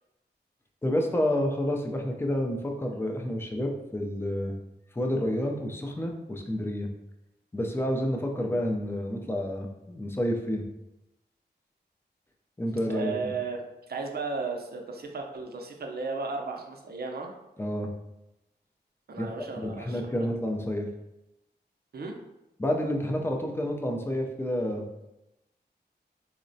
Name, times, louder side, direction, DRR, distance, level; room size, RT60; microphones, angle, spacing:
voice 1, 0.8-4.6 4.9-6.9 7.5-10.6 12.6-13.4 17.6-17.9 19.2-19.3 19.6-20.9 22.6-24.8, left 1 dB, 15° left, 2 dB, 0.4 m, -29 dB
voice 2, 12.9-13.6 13.9-17.3 19.1-20.0 21.9-22.2, right 4 dB, 65° right, 2 dB, 0.5 m, -34 dB
3.8 x 2.1 x 2.6 m, 0.92 s
wide cardioid pair, 80°, 18 cm